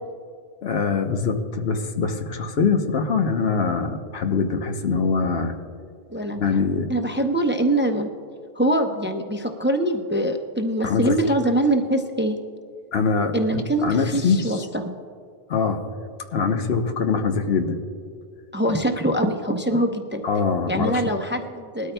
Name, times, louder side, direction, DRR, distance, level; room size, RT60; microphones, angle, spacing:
voice 1, 0.6-5.5 6.3-6.9 10.8-11.3 12.9-14.6 15.5-15.8 16.3-17.8 20.2-21.2, left 5 dB, 75° left, 5 dB, 1.1 m, -23 dB
voice 2, 6.1-6.4 6.9-8.1 8.5-12.4 13.3-15.0 18.5-20.2 20.7-21.9, right 1 dB, 15° right, 4 dB, 0.5 m, -23 dB
20.5 x 13.0 x 2.2 m, 2.2 s
omnidirectional pair, 1.0 m